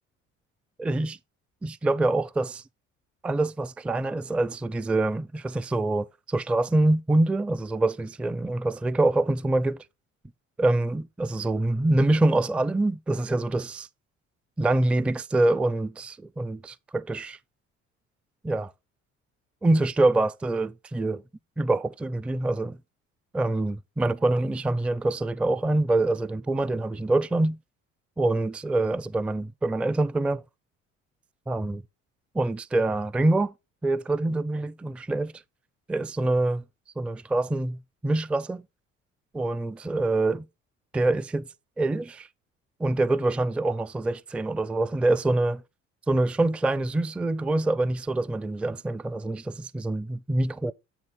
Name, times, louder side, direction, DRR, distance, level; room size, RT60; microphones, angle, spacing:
voice 1, 0.8-1.2 1.6-2.6 3.2-9.8 10.6-13.9 14.6-17.4 18.4-18.7 19.6-21.2 21.6-22.8 23.3-27.6 28.2-30.4 31.5-31.8 32.3-33.5 33.8-35.3 35.9-36.6 37.0-38.6 39.3-40.5 40.9-41.5 41.8-42.3 42.8-45.6 46.1-50.7, right 2 dB, 5° right, 0.4 m, -25 dB
7.7 x 7.2 x 3.3 m
figure-of-eight pair, 50°, 37 cm